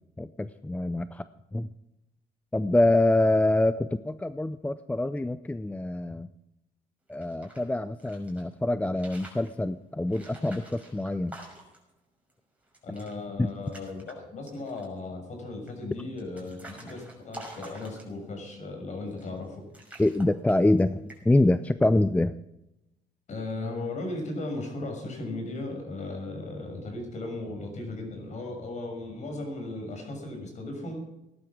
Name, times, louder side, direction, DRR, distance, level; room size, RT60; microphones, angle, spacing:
voice 1, 0.2-1.2 1.5-1.7 2.5-6.3 7.1-11.3 13.4-13.5 20.0-22.3, left 1 dB, 10° left, 13 dB, 0.5 m, -25 dB
sound 1, 7.1-8.4 8.9-9.5 10.1-11.9 12.3-12.4 12.6-13.1 13.5-14.1 14.5-15.0 15.7-18.4 19.1-19.5 19.7-20.8 21.1-21.5, right 1 dB, 10° right, 6.2 m, -48 dB
voice 2, 12.8-19.6 23.3-31.0, left 2 dB, 45° left, 3 dB, 6.8 m, -36 dB
18.0 x 11.5 x 6.1 m, 0.90 s
cardioid pair, 110°, 17 cm